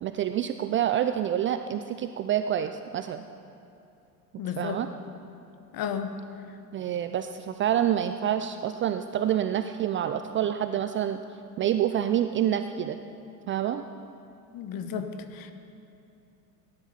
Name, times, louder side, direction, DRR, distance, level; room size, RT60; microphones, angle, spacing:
voice 1, 0.0-3.2 4.6-4.9 6.7-11.2 11.6-13.0 13.5-13.8, right 10 dB, 25° right, 9 dB, 0.4 m, -27 dB
voice 2, 4.4-4.8 5.7-6.1 14.5-15.5, left 7 dB, 45° left, 8 dB, 1.4 m, -33 dB
17.5 x 10.5 x 5.5 m, 2.8 s
figure-of-eight pair, 70°, 50 cm